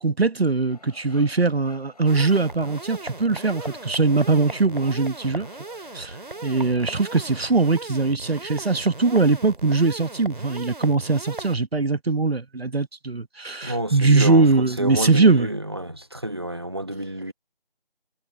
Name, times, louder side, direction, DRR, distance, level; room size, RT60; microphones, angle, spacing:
voice 1, 0.0-5.5 5.9-6.2 6.4-15.5, right 3 dB, 85° right, 1.5 m, -21 dB
sound 1, 0.7-7.5, left 3 dB, 40° left, 7.1 m, -50 dB
sound 2, 2.1-11.6, right 2 dB, 55° right, 2.7 m, -38 dB
voice 2, 13.6-17.3, right 1 dB, 25° right, 1.2 m, -29 dB
figure-of-eight pair, 175°, 30 cm